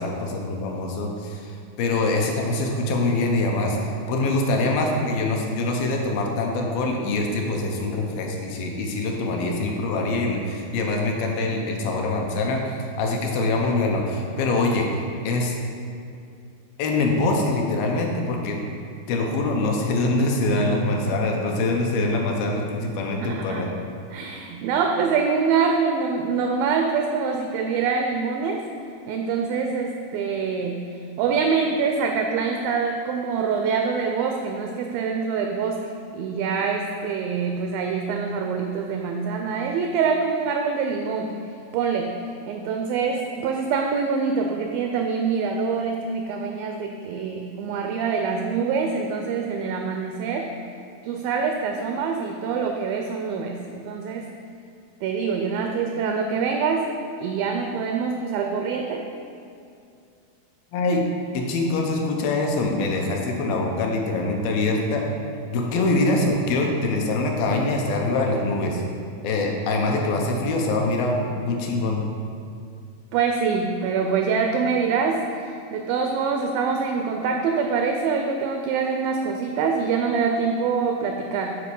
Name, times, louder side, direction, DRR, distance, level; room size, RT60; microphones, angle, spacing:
voice 1, 0.0-3.8 4.1-14.9 15.2-15.6 16.8-18.6 19.1-23.7 60.7-61.0 61.3-65.0 65.5-68.8 69.2-72.0, left 2 dB, 75° left, 1 dB, 2.4 m, -24 dB
voice 2, 23.2-23.7 24.1-28.6 29.1-30.8 31.2-41.4 41.7-42.2 42.5-50.5 51.0-54.3 55.0-56.9 57.2-59.1 73.1-81.5, right 5 dB, 85° right, 3 dB, 2.0 m, -25 dB
9.7 x 4.2 x 5.3 m, 2.4 s
omnidirectional pair, 4.6 m